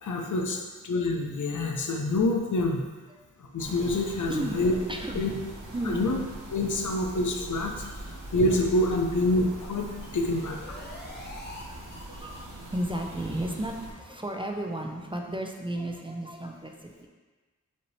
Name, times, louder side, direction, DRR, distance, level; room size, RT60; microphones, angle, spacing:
voice 1, 0.0-2.8 3.5-4.7 5.1-5.3 5.9-6.2 6.5-7.9 8.3-10.7, left 2 dB, 70° left, 1 dB, 0.6 m, -27 dB
sound 1, 3.6-13.9, right 1 dB, 75° right, 1.0 m, -42 dB
voice 2, 4.3-4.6 4.9-5.4 5.7-6.1 10.8-11.3 11.7-11.8 12.1-12.4 12.7-17.1, right 1 dB, 15° right, 2 dB, 0.4 m, -34 dB
sound 2, 9.7-11.6 11.9-12.0 12.3-12.4 12.7-12.8 13.1-13.2 13.5-13.6 13.9-14.0 14.3-14.4 14.7-14.8, left 2 dB, 35° left, 0.7 m, -46 dB
5.1 x 2.8 x 3.2 m, 1.3 s
cardioid pair, 55°, 31 cm